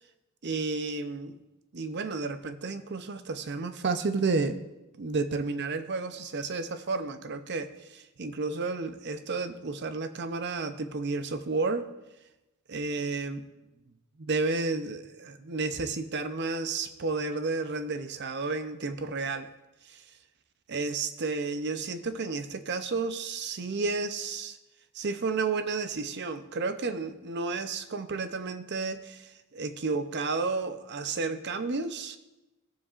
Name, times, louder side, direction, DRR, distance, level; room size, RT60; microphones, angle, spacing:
voice 1, 0.4-1.4 1.7-4.6 5.0-11.9 12.7-13.4 14.3-19.5 19.9-20.0 20.7-24.6 24.9-32.2, right 3 dB, 55° right, 10 dB, 0.6 m, -32 dB
17.5 x 7.3 x 2.5 m, 1.0 s
head